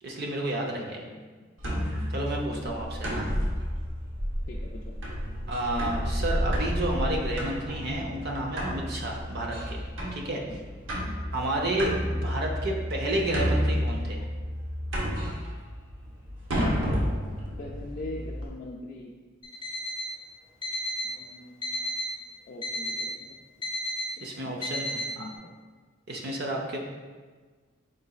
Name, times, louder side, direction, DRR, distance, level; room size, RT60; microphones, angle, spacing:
voice 1, 0.0-1.0 2.1-3.3 5.5-9.8 10.1-10.4 11.3-14.2 24.2-25.3 26.1-26.8, right 1 dB, 60° right, 1 dB, 0.6 m, -31 dB
voice 2, 0.7-1.5 2.5-2.7 4.5-5.0 10.4-10.6 11.0-11.3 17.6-19.1 21.0-22.0 22.5-23.4 24.4-25.6, left 2 dB, 45° left, -2 dB, 0.3 m, -43 dB
sound 1, 1.6-18.5, equal, 85° right, 0.8 m, -31 dB
Alarm, 19.4-20.1 20.6-21.1 21.6-22.1 22.6-23.1 23.6-24.1 24.6-25.1, left 1 dB, 25° left, 0.8 m, -32 dB
3.9 x 3.8 x 2.3 m, 1.4 s
head